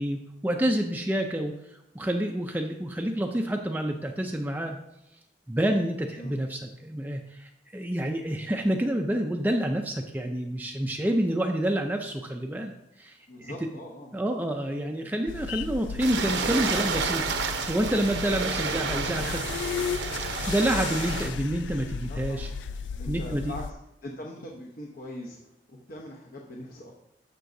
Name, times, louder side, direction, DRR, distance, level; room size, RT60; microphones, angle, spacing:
voice 1, 0.0-4.8 5.5-13.5 14.1-19.4 20.4-22.5 23.1-23.5, right 1 dB, 10° right, 2 dB, 0.4 m, -28 dB
voice 2, 13.3-14.1 22.0-22.5 23.0-23.8 24.0-27.1, left 1 dB, 55° left, -1 dB, 0.9 m, -42 dB
sound 1, 15.3-23.7, left 6 dB, 85° left, 0.3 m, -35 dB
sound 2, 16.0-21.3, right 4 dB, 85° right, 0.9 m, -30 dB
11.0 x 6.8 x 2.7 m, 0.88 s
head